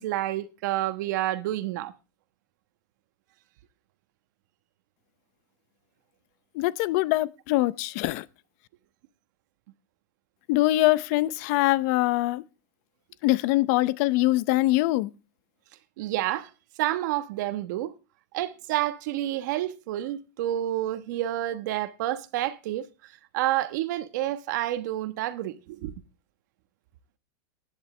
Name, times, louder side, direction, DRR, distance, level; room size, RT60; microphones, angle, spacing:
voice 1, 0.0-1.9 16.0-16.5 16.8-17.9 18.3-22.9 23.3-25.9, right 14 dB, 60° right, 1.2 m, -29 dB
voice 2, 6.5-8.2 10.5-12.4 13.2-15.1, left 18 dB, 50° left, 0.6 m, -23 dB
16.0 x 10.5 x 3.3 m
supercardioid pair, 150°, 11 cm